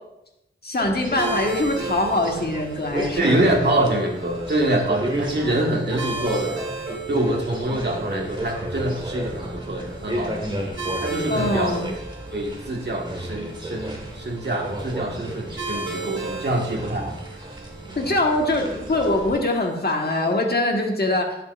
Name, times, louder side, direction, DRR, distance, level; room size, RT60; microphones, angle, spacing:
voice 1, 0.6-3.7 11.3-11.9 18.0-21.3, left 2 dB, 50° left, 1 dB, 1.5 m, -23 dB
sound 1, 0.8-19.4, right 1 dB, 20° right, 1.7 m, -33 dB
sound 2, 1.2-20.3, right 4 dB, 75° right, 2.2 m, -37 dB
voice 2, 3.2-6.6 7.1-10.5 11.0-11.7 12.3-17.2, right 1 dB, 55° right, 0 dB, 1.6 m, -25 dB
11.0 x 7.6 x 2.5 m, 0.86 s
wide cardioid pair, 70°, 21 cm